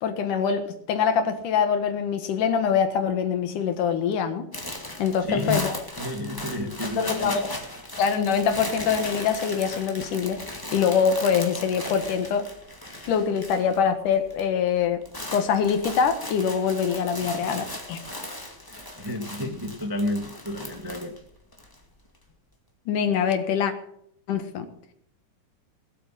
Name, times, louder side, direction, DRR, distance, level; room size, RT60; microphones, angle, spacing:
voice 1, 0.0-4.5 5.0-5.8 7.0-7.5 8.0-10.4 10.7-12.5 13.1-15.0 15.3-18.0 22.9-23.7 24.3-24.7, left 7 dB, 85° left, 8 dB, 3.1 m, -24 dB
sound 1, 4.5-13.8 14.1-14.5 14.8-21.7, left 1 dB, 10° left, 1.4 m, -37 dB
voice 2, 5.3-5.6 6.0-7.3 18.7-21.1, left 1 dB, 15° right, 4 dB, 0.9 m, -30 dB
19.5 x 8.4 x 7.7 m, 0.72 s
omnidirectional pair, 3.6 m